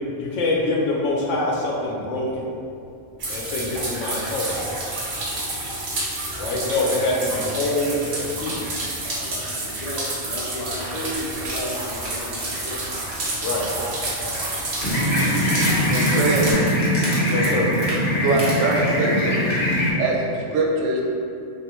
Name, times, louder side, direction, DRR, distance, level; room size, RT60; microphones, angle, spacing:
voice 1, 0.2-2.5 3.3-4.5 6.4-8.5 13.4-13.7 17.2-17.7, left 2 dB, 85° left, -2 dB, 0.9 m, -24 dB
sound 1, 3.2-16.5, right 2 dB, 60° right, 0.8 m, -29 dB
voice 2, 9.2-12.8, equal, 45° left, -7 dB, 0.6 m, -33 dB
sound 2, 11.5-19.2 19.5-19.8 20.1-20.2, right 1 dB, 25° right, 0.7 m, -34 dB
sound 3, 14.8-19.9, equal, 65° left, 0.9 m, -21 dB
voice 3, 15.9-16.5 18.2-19.4 20.0-21.0, right 3 dB, 90° right, -2 dB, 0.9 m, -22 dB
3.1 x 2.4 x 2.9 m, 2.5 s
omnidirectional pair, 1.2 m